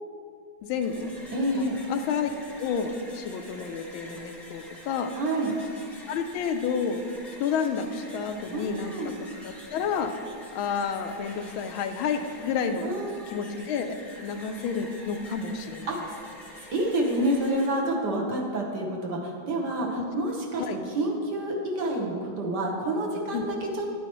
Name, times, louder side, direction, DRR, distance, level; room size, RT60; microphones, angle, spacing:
voice 1, 0.6-1.1 1.5-2.3 2.6-5.1 6.1-7.0 7.4-8.9 9.4-10.2 10.5-12.8 13.3-14.0 14.2-15.9 20.0-20.1 20.6-20.8 23.3-23.4, left 6 dB, 85° left, 7 dB, 1.4 m, -30 dB
sound 1, 0.6-17.7, left 1 dB, ahead, 1.1 m, -46 dB
voice 2, 1.3-1.8 5.1-5.6 8.5-9.1 12.8-13.3 15.9-16.3 16.7-23.9, right 1 dB, 55° right, -1 dB, 1.6 m, -28 dB
11.0 x 8.8 x 3.0 m, 2.2 s
omnidirectional pair, 2.2 m